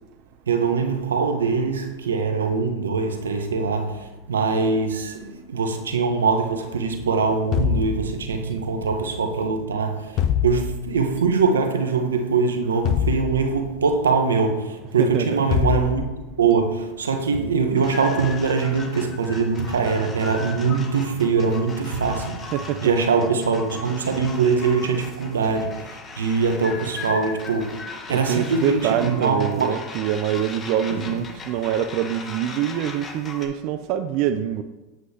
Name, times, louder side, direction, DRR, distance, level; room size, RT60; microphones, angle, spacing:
voice 1, 0.5-16.0 16.4-22.5 22.8-29.8 30.9-31.2, right 4 dB, 90° right, 0.9 m, -23 dB
sound 1, 7.5-8.6 10.2-11.1 12.8-13.9 15.5-16.5, left 8 dB, 50° left, 0.5 m, -24 dB
voice 2, 15.0-15.4 22.5-22.8 28.1-34.6, right 10 dB, 55° right, 0.4 m, -25 dB
sound 2, 17.8-33.5, left 4 dB, 30° left, 1.4 m, -38 dB
8.0 x 7.7 x 2.8 m
hypercardioid pair, 95°, 0 cm